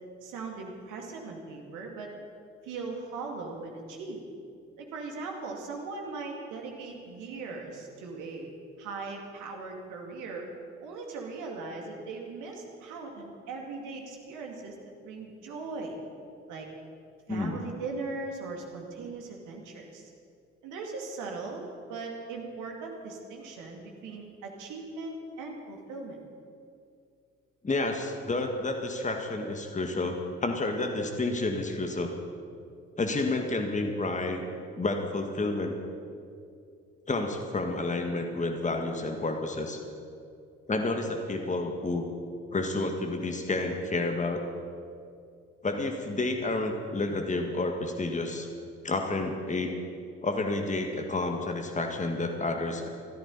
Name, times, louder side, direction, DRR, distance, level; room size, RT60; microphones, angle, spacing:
voice 1, 0.2-2.1 2.6-4.2 4.8-8.5 8.8-10.5 10.8-14.8 15.0-16.0 16.5-16.7 17.3-20.1 20.6-26.2, right 3 dB, 60° right, 1 dB, 2.5 m, -39 dB
voice 2, 17.3-17.6 27.6-32.1 33.0-34.4 34.8-35.7 37.1-39.8 40.7-42.0 42.5-44.4 45.6-48.5 48.8-49.7 50.2-52.8, left 2 dB, 20° left, 4 dB, 1.8 m, -30 dB
23.0 x 13.0 x 4.2 m, 2.4 s
figure-of-eight pair, 50°, 34 cm